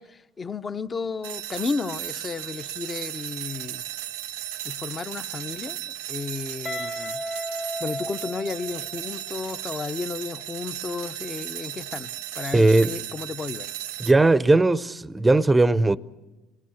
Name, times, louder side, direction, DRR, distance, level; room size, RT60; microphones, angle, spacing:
voice 1, 0.0-3.8 4.6-5.8 6.1-7.2 7.8-13.7, left 4 dB, 30° left, 0.8 m, -33 dB
sound 1, 1.2-14.1, right 12 dB, 85° right, 0.8 m, -35 dB
Guitar, 6.6-9.5, equal, 55° left, 2.1 m, -34 dB
voice 2, 12.5-13.0 14.0-16.0, right 2 dB, 15° right, 0.7 m, -18 dB
27.0 x 18.5 x 7.2 m
hypercardioid pair, 75°, 0 cm